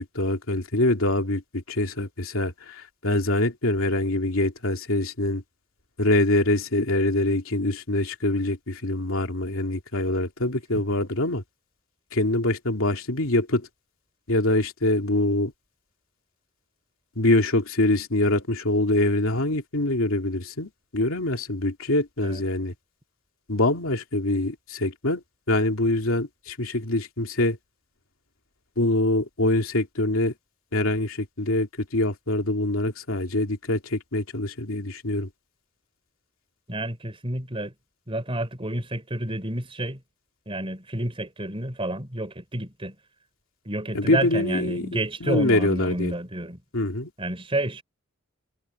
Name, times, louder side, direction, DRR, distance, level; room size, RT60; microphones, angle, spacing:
voice 1, 0.0-5.4 6.0-11.4 12.1-13.7 14.3-15.5 17.2-22.7 23.5-25.2 25.5-27.6 28.8-30.3 30.7-35.3 43.9-46.1 46.7-47.1, left 1 dB, 80° left, 2.6 m, -24 dB
voice 2, 36.7-37.7 38.1-40.0 40.5-43.0 43.7-46.6 47.2-47.8, right 1 dB, 25° right, 4.1 m, -30 dB
head